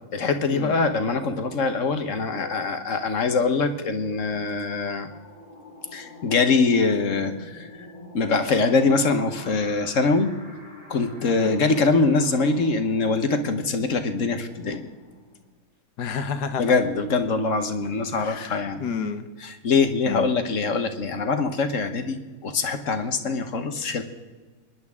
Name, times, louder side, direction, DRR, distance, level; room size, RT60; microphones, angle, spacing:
voice 1, 0.1-5.1 5.9-7.7 8.1-10.3 10.9-14.9 16.6-18.8 19.4-24.0, left 4 dB, 55° left, 7 dB, 1.3 m, -23 dB
sound 1, 3.2-15.6, left 1 dB, 75° right, 7.1 m, -46 dB
voice 2, 16.0-16.7 18.1-19.3 20.0-20.3, left 6 dB, 80° left, 9 dB, 1.5 m, -31 dB
28.0 x 11.0 x 3.6 m, 1.3 s
omnidirectional pair, 1.8 m